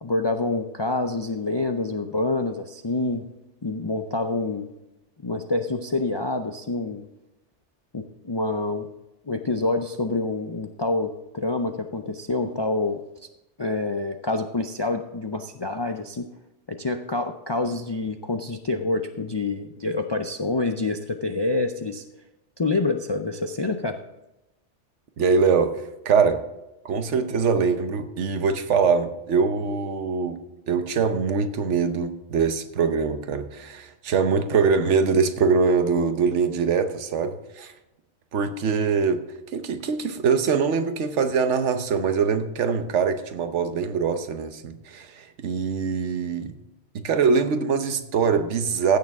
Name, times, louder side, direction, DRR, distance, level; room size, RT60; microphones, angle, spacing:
voice 1, 0.0-3.2 3.6-4.7 5.2-7.0 7.9-8.9 9.3-13.0 13.6-16.3 16.7-22.0 22.6-24.0, left 2 dB, 45° left, 6 dB, 0.3 m, -27 dB
voice 2, 25.2-26.4 26.8-30.4 30.7-37.7 38.3-39.2 39.5-46.6 46.9-49.0, right 5 dB, 80° right, 9 dB, 1.2 m, -23 dB
15.0 x 6.7 x 3.5 m, 0.96 s
omnidirectional pair, 1.2 m